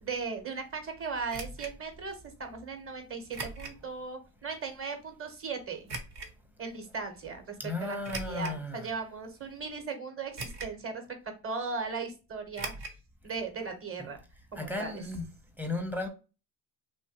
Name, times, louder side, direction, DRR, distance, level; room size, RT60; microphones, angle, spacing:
voice 1, 0.0-5.8 6.6-7.6 7.8-11.0 11.4-12.7 13.2-14.2 14.5-15.0, right 4 dB, 25° right, 0.9 m, -37 dB
sound 1, 1.3-1.7 3.3-3.8 4.4-4.5 5.9-6.3 8.0-8.6 9.2-9.3 10.4-10.8 11.1-11.2 12.5-13.0 13.3-13.4 13.6-13.7, right 3 dB, 55° right, 0.9 m, -39 dB
voice 2, 7.6-8.9 14.5-15.3 15.6-16.1, left 2 dB, 5° right, 0.6 m, -35 dB
3.1 x 2.2 x 2.8 m
supercardioid pair, 80°, 50 cm